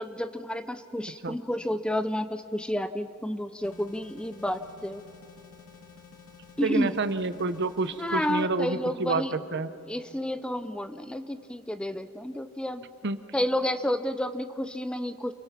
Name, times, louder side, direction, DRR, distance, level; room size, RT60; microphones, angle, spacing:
voice 1, 0.0-5.0 6.6-7.0 8.0-9.3 9.9-12.8 13.3-15.3, left 1 dB, 5° left, 11 dB, 0.5 m, -30 dB
sound 1, 3.6-8.5, left 5 dB, 70° left, 2.6 m, -51 dB
voice 2, 6.6-9.7 13.0-13.2, right 3 dB, 55° right, 12 dB, 0.8 m, -28 dB
29.0 x 22.5 x 5.8 m, 2.7 s
head